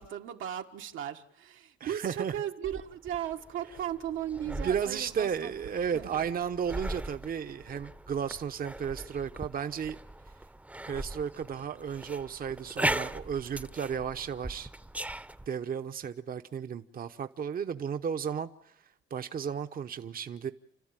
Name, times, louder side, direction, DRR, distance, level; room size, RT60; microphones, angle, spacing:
voice 1, 0.0-5.5 5.9-6.3, right 10 dB, 85° right, 1.6 m, -37 dB
voice 2, 1.8-2.3 4.5-10.0 10.9-14.7 15.5-18.7 19.1-20.5, right 7 dB, 45° right, 0.9 m, -34 dB
sound 1, 2.6-15.5, right 1 dB, 5° right, 0.8 m, -39 dB
29.5 x 13.0 x 9.0 m
cardioid pair, 90°, 20 cm